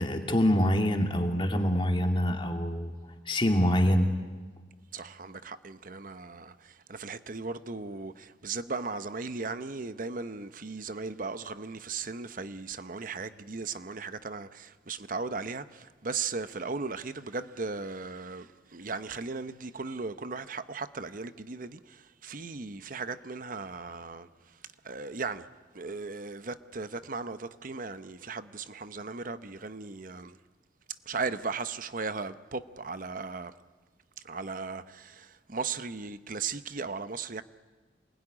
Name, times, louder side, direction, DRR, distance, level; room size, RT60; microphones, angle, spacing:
voice 1, 0.0-2.9 3.3-4.1, equal, 25° left, 2.4 m, -25 dB
voice 2, 4.9-24.3 24.8-25.5 25.7-30.4 31.1-33.5 34.2-37.4, right 4 dB, 45° right, 0.9 m, -37 dB
27.5 x 20.5 x 10.0 m
head